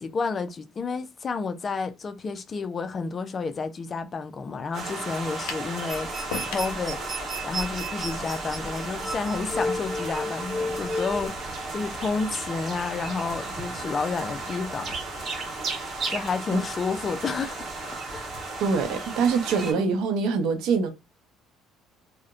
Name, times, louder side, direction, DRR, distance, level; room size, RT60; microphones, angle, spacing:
voice 1, 0.0-6.1 6.5-7.0 7.4-15.3 16.1-17.7 18.1-18.3 19.7-20.0, left 4 dB, 35° left, 0.3 m, -30 dB
sound 1, 4.7-19.7, right 3 dB, 40° right, 0.9 m, -34 dB
sound 2, 5.5-5.7 6.3-6.8, left 6 dB, 85° left, 0.5 m, -34 dB
sound 3, 5.9-11.3, equal, 20° right, 0.7 m, -33 dB
voice 2, 18.6-20.9, right 5 dB, 75° right, 0.6 m, -24 dB
2.8 x 2.0 x 2.4 m
cardioid pair, 110°, 0 cm